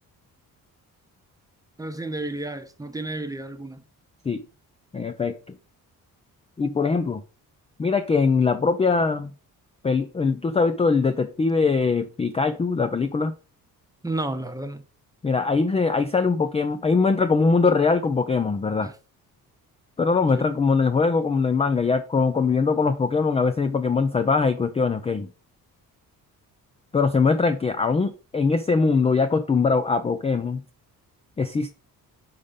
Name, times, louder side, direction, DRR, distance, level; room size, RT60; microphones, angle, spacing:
voice 1, 1.8-3.8 14.0-14.8 18.8-18.9 20.3-20.4, right 2 dB, 10° right, 0.9 m, -31 dB
voice 2, 4.9-5.4 6.6-7.2 7.8-9.3 9.8-13.3 15.2-18.9 20.0-25.3 26.9-30.6 31.4-31.8, left 4 dB, 20° left, 0.4 m, -22 dB
5.6 x 5.2 x 5.0 m
cardioid pair, 125°, 35 cm